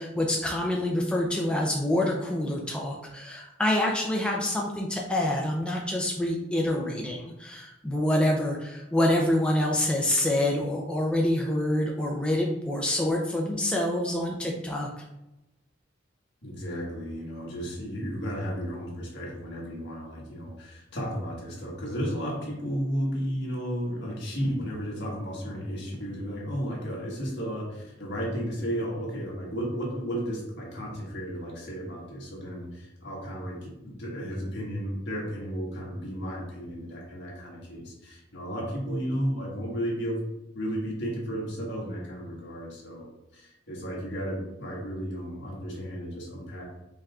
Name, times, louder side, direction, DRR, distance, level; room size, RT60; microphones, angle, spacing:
voice 1, 0.0-15.0, left 1 dB, 5° left, -2 dB, 0.4 m, -26 dB
voice 2, 16.4-40.2 40.5-46.6, equal, 60° left, -3 dB, 1.5 m, -33 dB
5.5 x 3.6 x 2.4 m, 0.95 s
head